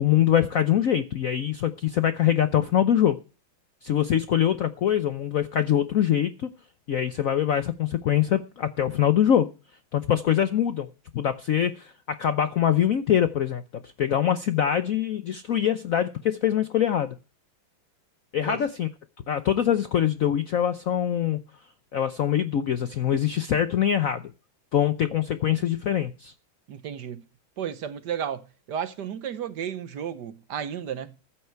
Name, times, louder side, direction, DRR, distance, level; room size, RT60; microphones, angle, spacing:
voice 1, 0.0-3.2 3.8-6.5 6.9-9.5 9.9-10.9 11.1-17.2 18.3-18.9 19.3-21.4 21.9-24.3 24.7-26.3, left 10 dB, 65° left, 0.8 m, -23 dB
voice 2, 26.7-27.2 27.6-31.2, right 8 dB, 60° right, 1.4 m, -33 dB
14.5 x 8.9 x 4.5 m
omnidirectional pair, 2.2 m